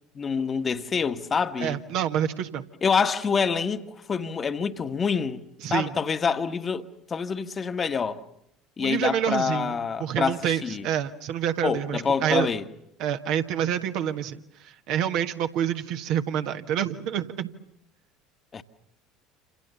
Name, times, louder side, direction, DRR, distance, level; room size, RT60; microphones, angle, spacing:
voice 1, 0.1-1.8 2.8-5.4 5.7-8.2 8.8-10.8 11.6-12.7 18.5-18.6, left 6 dB, 30° left, 1.4 m, -26 dB
voice 2, 1.6-2.6 5.6-5.9 8.8-9.7 10.0-12.5 13.0-17.5, right 10 dB, 60° right, 1.5 m, -27 dB
28.5 x 27.0 x 7.0 m
figure-of-eight pair, 65°, 0 cm